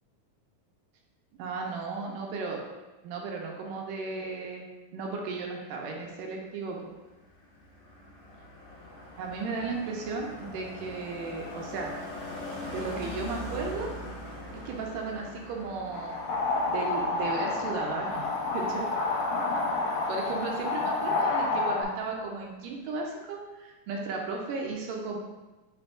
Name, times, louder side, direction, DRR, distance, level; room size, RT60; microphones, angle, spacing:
voice 1, 1.4-2.6 3.0-4.7 4.9-6.9 9.2-11.9 12.7-13.9 14.7-16.2 16.7-18.9 20.1-25.2, right 4 dB, 80° right, 0 dB, 2.1 m, -35 dB
Car passing by, 6.8-21.6 21.9-22.2, left 1 dB, 70° left, 1.5 m, -43 dB
sound 1, 15.9-21.8, left 3 dB, 85° left, 2.3 m, -29 dB
6.8 x 3.4 x 2.2 m, 1.1 s
omnidirectional pair, 4.0 m